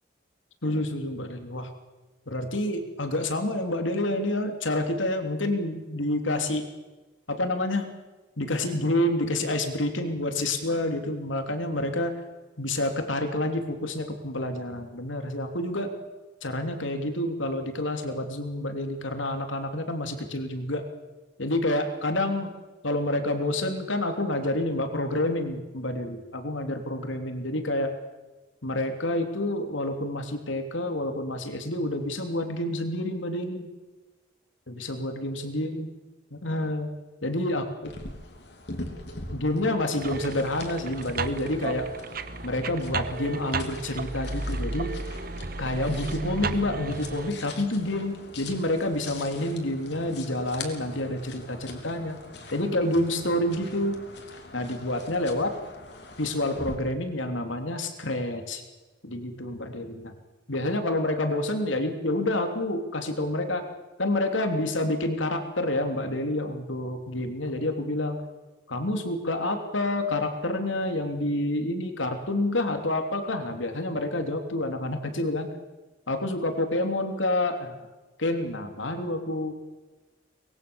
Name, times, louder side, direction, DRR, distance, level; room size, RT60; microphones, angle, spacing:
voice 1, 0.6-1.7 2.3-6.7 7.3-7.9 8.4-12.1 12.6-15.9 16.4-20.8 21.4-22.5 22.8-27.9 28.6-33.7 34.7-35.9 36.3-36.9 37.2-37.6 39.3-41.9 42.4-44.9 45.6-52.2 52.5-54.0 54.5-55.5 56.2-58.6 59.0-60.1 60.5-63.6 64.0-68.2 68.7-75.5 76.1-77.7 78.2-79.5, left 1 dB, 85° left, 5 dB, 3.2 m, -28 dB
sound 1, 37.8-56.7, left 2 dB, 60° left, 3.4 m, -43 dB
sound 2, 40.0-47.3, right 3 dB, 50° right, 1.2 m, -33 dB
24.0 x 21.5 x 7.1 m, 1.2 s
head